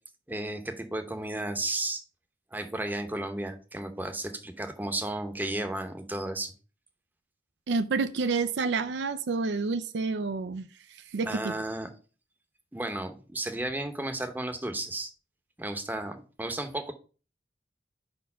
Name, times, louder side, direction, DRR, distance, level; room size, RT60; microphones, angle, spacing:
voice 1, 0.3-2.0 2.5-6.5 11.2-11.9 12.7-15.1 15.6-16.9, right 1 dB, 10° right, 7 dB, 0.8 m, -33 dB
voice 2, 7.7-10.7 11.1-11.5, right 4 dB, 80° right, 11 dB, 0.5 m, -29 dB
5.0 x 4.4 x 5.6 m, 0.36 s
head